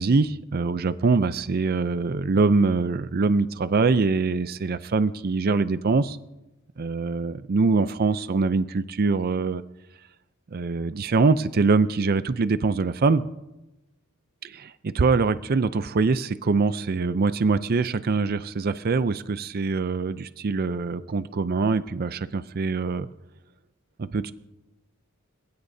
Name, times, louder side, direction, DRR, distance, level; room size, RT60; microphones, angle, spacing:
voice 1, 0.0-6.2 6.8-9.6 10.5-13.2 14.5-23.1 24.0-24.3, right 4 dB, 45° right, 13 dB, 0.5 m, -23 dB
30.0 x 16.5 x 2.7 m, 0.99 s
head